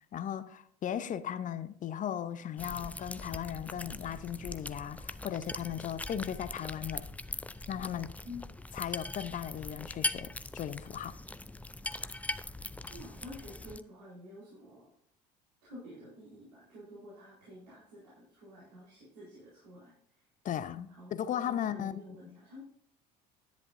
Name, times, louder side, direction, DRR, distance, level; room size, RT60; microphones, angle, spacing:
voice 1, 0.1-7.1 7.7-8.1 8.7-11.1 20.4-22.4, left 10 dB, 40° left, 0.7 m, -37 dB
sound 1, 2.6-13.8, left 2 dB, 5° left, 0.4 m, -41 dB
voice 2, 12.9-14.9 15.6-19.9 20.9-22.6, left 1 dB, 75° right, 4.3 m, -49 dB
10.5 x 10.5 x 2.6 m
figure-of-eight pair, 60°, 21 cm